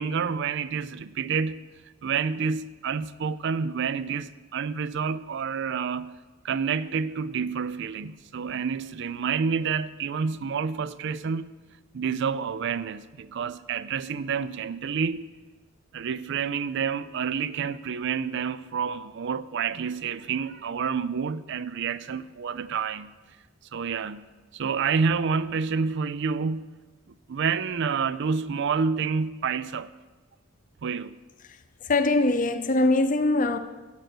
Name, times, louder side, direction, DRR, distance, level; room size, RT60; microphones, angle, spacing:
voice 1, 0.0-1.6 2.0-11.5 11.9-15.3 15.9-23.1 23.7-24.3 24.5-26.8 27.3-29.9 30.8-31.2, right 6 dB, 60° right, 0.4 m, -28 dB
voice 2, 31.9-33.6, left 2 dB, 40° left, 0.7 m, -22 dB
11.5 x 7.9 x 6.1 m
head